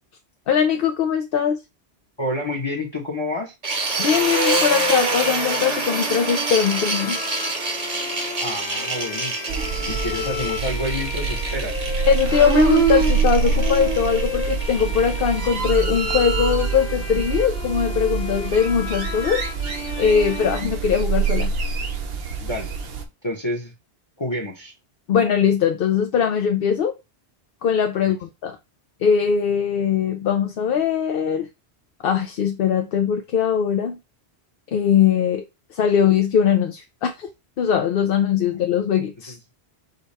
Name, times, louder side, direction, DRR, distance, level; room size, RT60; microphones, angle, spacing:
voice 1, 0.5-1.6 4.0-7.2 12.1-19.4 20.0-21.5 25.1-27.0 27.6-28.6 29.0-31.5 32.0-34.0 34.7-35.4 35.7-37.3 37.6-39.4, left 7 dB, 65° left, 0.7 m, -21 dB
voice 2, 2.2-3.5 8.4-9.4 9.8-11.9 22.4-22.7 23.2-23.7 24.2-24.7 28.0-28.1, left 1 dB, 30° left, 0.9 m, -28 dB
sound 1, 3.6-15.6, right 2 dB, 40° right, 1.0 m, -27 dB
Bowed string instrument, 5.5-21.4, left 5 dB, 90° left, 1.4 m, -34 dB
sound 2, 9.5-23.0, right 5 dB, 70° right, 1.0 m, -25 dB
5.2 x 2.3 x 4.1 m
omnidirectional pair, 1.1 m